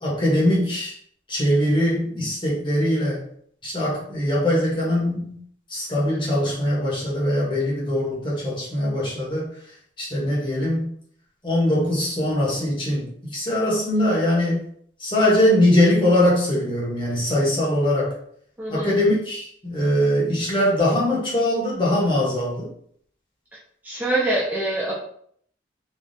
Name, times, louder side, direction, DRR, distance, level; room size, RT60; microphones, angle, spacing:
voice 1, 0.0-0.9 1.3-3.2 3.6-5.4 5.7-9.5 10.0-10.9 11.4-14.7 15.0-18.1 18.7-22.7, left 1 dB, 25° left, -5 dB, 1.0 m, -22 dB
voice 2, 18.6-18.9 23.8-25.0, right 1 dB, 10° right, -6 dB, 0.5 m, -24 dB
3.4 x 2.3 x 2.6 m, 0.63 s
head